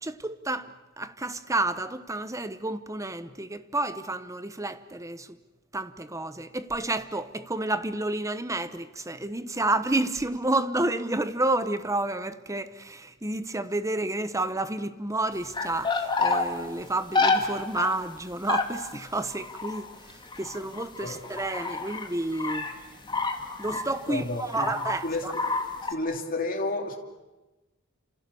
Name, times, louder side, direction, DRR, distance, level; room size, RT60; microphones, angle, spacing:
voice 1, 0.0-5.4 5.7-22.7 23.6-25.3, right 2 dB, 15° right, 1.0 m, -30 dB
sound 1, 15.4-16.4 17.1-17.4 17.7-17.9 18.5-22.1 22.3-22.7 23.0-24.1 24.5-25.0 25.3-25.9, left 3 dB, 20° left, 2.3 m, -28 dB
voice 2, 24.1-24.7 25.0-25.3 25.9-27.0, left 2 dB, 40° left, 2.8 m, -30 dB
30.0 x 27.5 x 7.0 m
head